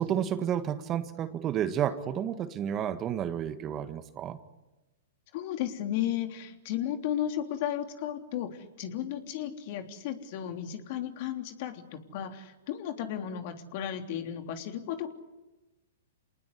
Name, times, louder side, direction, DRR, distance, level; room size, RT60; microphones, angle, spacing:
voice 1, 0.0-4.4, right 9 dB, 30° right, 11 dB, 1.6 m, -31 dB
voice 2, 5.3-8.5 8.8-15.1, left 10 dB, 50° left, 6 dB, 3.4 m, -34 dB
28.5 x 19.0 x 9.8 m, 1.1 s
hypercardioid pair, 120°, 0 cm